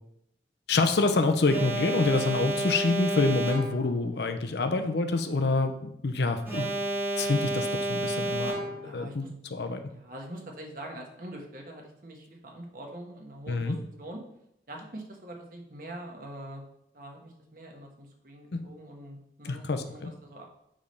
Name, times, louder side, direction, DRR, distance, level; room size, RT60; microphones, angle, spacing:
voice 1, 0.7-6.7 7.2-8.5 8.8-9.8 13.5-13.8 18.5-18.6 19.4-20.1, left 3 dB, 75° left, 7 dB, 0.6 m, -27 dB
Alarm, 1.5-4.0 6.5-9.0, right 2 dB, 10° right, 1.2 m, -31 dB
voice 2, 8.8-9.3 9.9-14.2 14.7-16.6 16.9-20.5, right 1 dB, 50° right, 0 dB, 1.3 m, -44 dB
7.2 x 3.4 x 5.3 m, 0.80 s
head